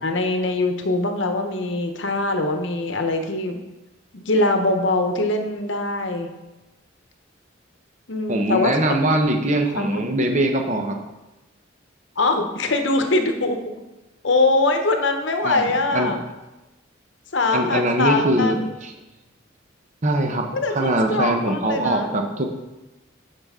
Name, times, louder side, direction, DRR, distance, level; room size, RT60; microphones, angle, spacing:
voice 1, 0.0-3.6 4.1-6.3 8.1-8.8 9.8-10.0 12.2-13.6 14.2-16.2 17.3-18.6 20.5-22.1, left 2 dB, 65° left, 6 dB, 0.9 m, -22 dB
voice 2, 8.3-10.9 15.4-16.1 17.5-18.9 20.0-20.5 20.7-22.5, right 1 dB, 35° right, 4 dB, 0.9 m, -22 dB
8.7 x 5.8 x 3.7 m, 1.0 s
head